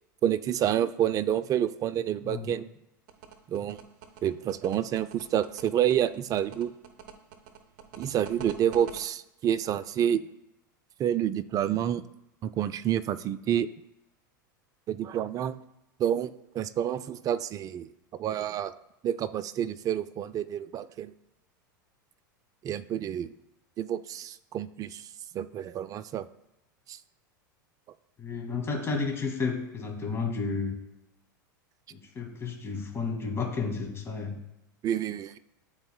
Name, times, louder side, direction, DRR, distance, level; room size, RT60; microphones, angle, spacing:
voice 1, 0.2-2.7 3.5-3.8 4.2-6.7 8.0-10.2 11.0-12.0 12.4-13.7 14.9-15.5 16.0-17.9 18.2-18.7 19.0-21.1 22.6-23.3 23.8-25.1 25.3-26.3 26.9-27.0 34.8-35.4, right 10 dB, 35° right, 14 dB, 0.4 m, -28 dB
sound 1, 3.1-9.0, right 8 dB, 60° right, 0.8 m, -45 dB
voice 2, 28.2-30.7 31.9-34.4, left 4 dB, 25° left, 1 dB, 2.0 m, -32 dB
11.5 x 3.9 x 2.2 m, 0.88 s
hypercardioid pair, 95°, 11 cm